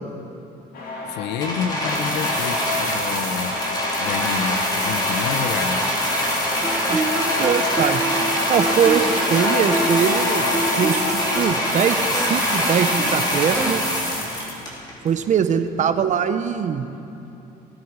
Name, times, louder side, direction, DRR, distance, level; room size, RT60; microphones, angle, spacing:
sound 1, 0.7-11.4, left 2 dB, 65° left, 2.3 m, -30 dB
voice 1, 1.1-3.6 4.0-5.9, left 7 dB, 90° left, 11 dB, 0.7 m, -28 dB
sound 2, 1.4-15.1 15.8-15.9, equal, 25° left, 3.0 m, -24 dB
Guitar, 6.6-14.3, right 2 dB, 15° right, 0.8 m, -29 dB
voice 2, 7.4-8.0 8.5-10.5 10.8-13.9 15.0-16.9, right 7 dB, 45° right, 10 dB, 0.8 m, -22 dB
18.0 x 9.9 x 4.8 m, 2.9 s
cardioid pair, 110°, 17 cm